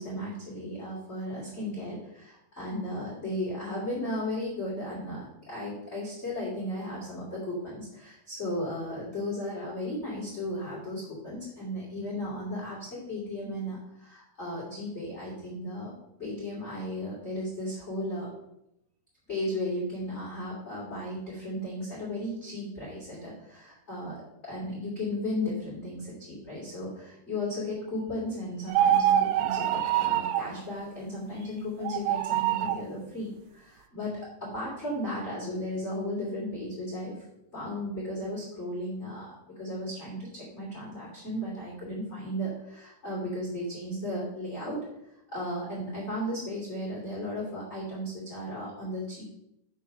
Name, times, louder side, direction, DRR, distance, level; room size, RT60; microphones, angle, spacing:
voice 1, 0.0-15.9 16.2-18.3 19.3-37.1 37.5-44.8 45.3-49.2, left 1 dB, 20° left, -7 dB, 2.2 m, -35 dB
sound 1, 28.7-30.5 31.8-32.8, right 11 dB, 85° right, 3.1 m, -25 dB
7.6 x 6.7 x 5.7 m, 0.81 s
omnidirectional pair, 5.6 m